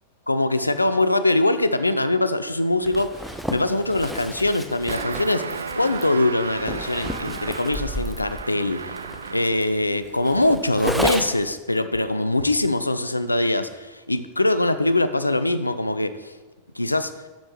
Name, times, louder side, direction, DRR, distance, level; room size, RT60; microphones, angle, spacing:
voice 1, 0.3-3.1 3.5-8.8 9.3-16.3 16.8-17.1, left 2 dB, 85° left, 11 dB, 0.4 m, -22 dB
Zipper (clothing), 2.8-11.5, equal, ahead, 0.5 m, -32 dB
sound 1, 4.9-9.7, right 5 dB, 70° right, 0.4 m, -34 dB
12.0 x 5.3 x 3.2 m, 1.2 s
figure-of-eight pair, 90°, 0 cm